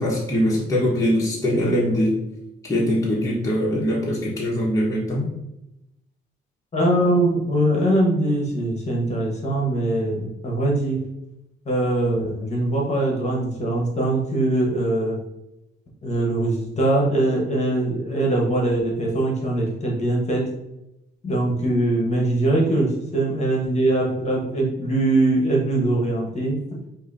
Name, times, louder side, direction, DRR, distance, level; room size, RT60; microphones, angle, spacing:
voice 1, 0.0-2.1 2.7-5.3, equal, 15° left, -6 dB, 1.1 m, -22 dB
voice 2, 6.7-11.0 11.6-15.2 16.0-20.4 21.2-26.5, right 1 dB, 35° left, -2 dB, 1.2 m, -22 dB
4.7 x 2.7 x 2.6 m, 0.90 s
cardioid pair, 90°, 20 cm